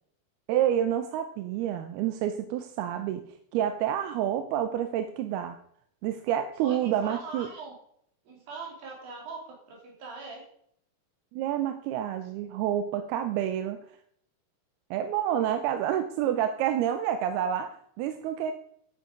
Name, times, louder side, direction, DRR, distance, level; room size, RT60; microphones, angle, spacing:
voice 1, 0.5-3.2 3.5-5.6 6.0-7.5 11.3-13.8 14.9-17.7 18.0-18.5, right 10 dB, 90° right, 9 dB, 2.7 m, -28 dB
voice 2, 6.6-7.7 8.2-10.4, right 4 dB, 70° right, -1 dB, 5.0 m, -41 dB
10.0 x 9.1 x 5.1 m, 0.67 s
omnidirectional pair, 4.4 m